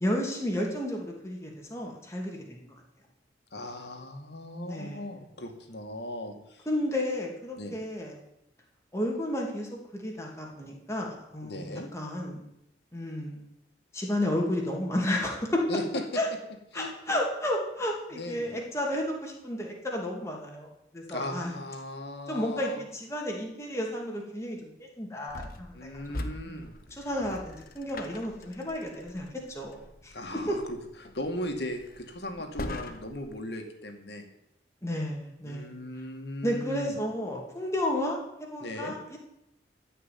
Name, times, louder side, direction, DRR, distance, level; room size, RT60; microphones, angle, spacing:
voice 1, 0.0-2.7 4.6-5.0 6.7-8.2 8.9-12.4 12.9-13.5 13.9-15.6 16.1-16.3 16.7-20.7 20.9-21.5 22.3-25.9 26.9-30.1 30.5-30.6 32.7-32.8 34.8-35.7 36.4-39.2, left 1 dB, 15° left, -1 dB, 2.7 m, -32 dB
voice 2, 3.5-6.7 7.6-7.8 11.4-11.9 15.7-16.2 16.7-17.2 18.1-18.6 21.1-22.8 25.7-27.0 30.1-34.2 35.4-37.0 38.6-39.0, left 1 dB, 70° left, 4 dB, 2.3 m, -38 dB
sound 1, 25.3-33.3, left 1 dB, 50° left, 1.3 m, -42 dB
15.5 x 5.9 x 9.4 m, 0.82 s
head